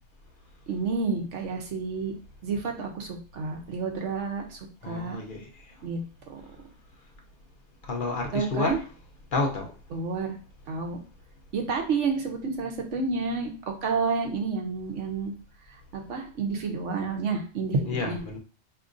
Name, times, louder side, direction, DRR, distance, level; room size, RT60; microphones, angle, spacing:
voice 1, 0.7-2.1 2.4-4.6 4.9-5.2 5.8-6.0 6.3-6.4 8.3-8.8 9.9-10.4 10.7-11.0 11.5-13.5 13.8-15.3 15.9-18.2, right 4 dB, 80° right, 1.1 m, -29 dB
voice 2, 4.8-5.6 7.8-8.8 9.3-9.7 17.9-18.4, left 3 dB, 50° left, 0.8 m, -30 dB
4.9 x 2.8 x 2.6 m
omnidirectional pair, 1.2 m